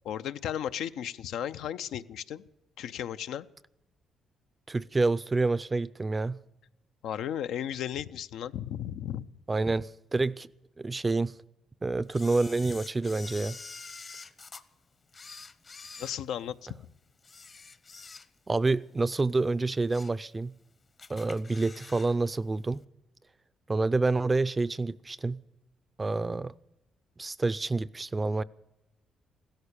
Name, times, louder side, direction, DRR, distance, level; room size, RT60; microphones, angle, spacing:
voice 1, 0.0-2.4 2.8-3.5 7.0-9.3 16.0-16.7, left 10 dB, 80° left, 11 dB, 0.5 m, -35 dB
voice 2, 4.7-6.4 9.5-10.5 10.8-11.3 11.8-13.6 18.5-20.5 21.1-22.8 23.7-25.4 26.0-26.5 27.2-28.4, right 3 dB, 25° right, 18 dB, 0.5 m, -28 dB
Camera, 12.1-14.6 15.1-16.7 17.2-18.6 18.9-19.1 19.6-20.2 20.6-20.7 21.0-22.2 22.4-22.5, left 4 dB, 40° left, 0.9 m, -47 dB
16.0 x 13.0 x 6.8 m, 0.94 s
cardioid pair, 90°, 0 cm